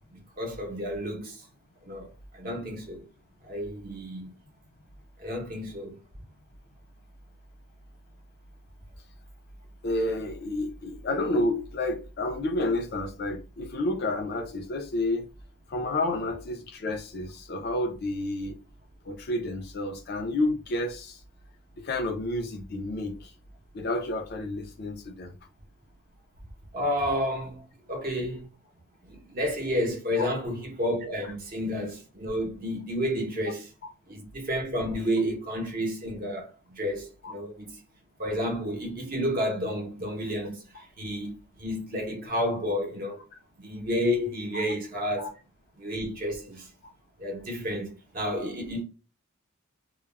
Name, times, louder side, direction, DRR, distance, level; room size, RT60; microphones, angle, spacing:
voice 1, 0.1-1.4 1.8-3.1 3.4-4.3 5.2-6.0 26.7-28.5 29.0-33.7 34.1-37.8 38.2-43.2 43.6-45.3 45.8-46.7 47.2-48.8, equal, 40° right, 0.7 m, -31 dB
voice 2, 9.8-15.3 15.7-18.6 19.1-21.2 21.8-23.3 23.7-25.3 30.2-30.3 37.2-37.3 44.5-44.6 45.2-45.3, left 2 dB, 50° left, 0.4 m, -30 dB
2.3 x 2.0 x 3.1 m
head